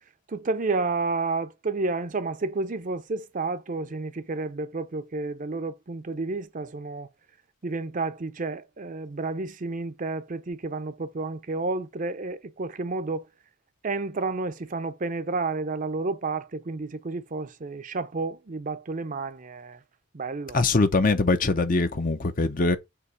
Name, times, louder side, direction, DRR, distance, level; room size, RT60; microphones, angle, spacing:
voice 1, 0.3-7.1 7.6-13.2 13.8-19.8 20.1-20.6, right 3 dB, 40° right, 0.6 m, -31 dB
voice 2, 20.5-22.8, left 3 dB, 40° left, 0.7 m, -22 dB
6.9 x 3.0 x 4.7 m
head